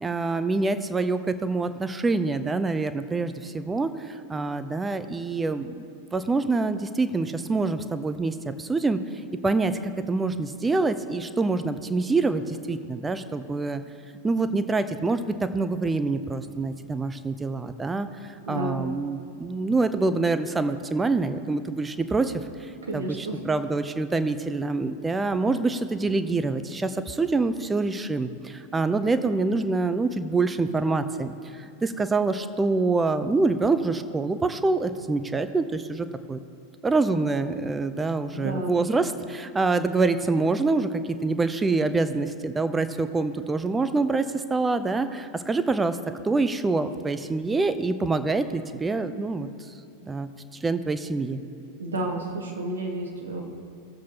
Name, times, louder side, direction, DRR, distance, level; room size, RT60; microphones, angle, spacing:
voice 1, 0.0-3.9 4.3-5.8 6.1-9.0 9.4-13.8 14.2-18.1 18.5-22.3 22.9-31.3 31.8-36.4 36.8-44.2 44.5-46.0 46.2-49.5 50.0-50.3 50.6-51.4, right 3 dB, 10° right, 11 dB, 0.5 m, -26 dB
voice 2, 18.4-18.9 22.8-23.4 38.3-38.7 51.8-53.4, right 2 dB, 70° right, 0 dB, 1.6 m, -31 dB
18.0 x 7.4 x 2.8 m, 2.7 s
figure-of-eight pair, 90°, 0 cm